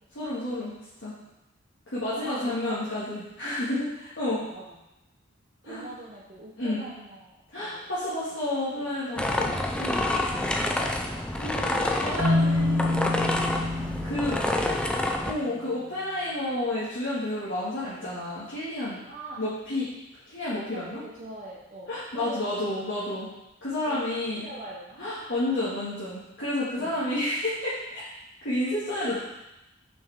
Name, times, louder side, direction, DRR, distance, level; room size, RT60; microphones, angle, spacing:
voice 1, 0.2-1.2 1.9-4.4 5.6-5.9 6.6-6.9 7.5-10.0 11.4-13.1 14.0-14.4 15.3-19.0 19.4-19.9 20.3-21.0 21.9-23.3 23.6-24.5 25.0-28.0 28.4-29.2, left 1 dB, 65° left, -11 dB, 1.9 m, -30 dB
voice 2, 2.0-3.1 4.3-4.8 5.6-7.9 8.7-9.0 9.8-11.4 12.2-12.5 12.8-15.0 15.4-15.6 19.1-19.4 20.7-22.8 23.9-25.0 26.5-27.0, right 1 dB, 40° right, -5 dB, 0.8 m, -44 dB
sound 1, 9.2-15.3, left 1 dB, 5° left, 0.4 m, -28 dB
Marimba xylophone, 12.2-15.2, left 2 dB, 80° right, 1.2 m, -27 dB
6.0 x 5.5 x 3.6 m, 0.91 s
head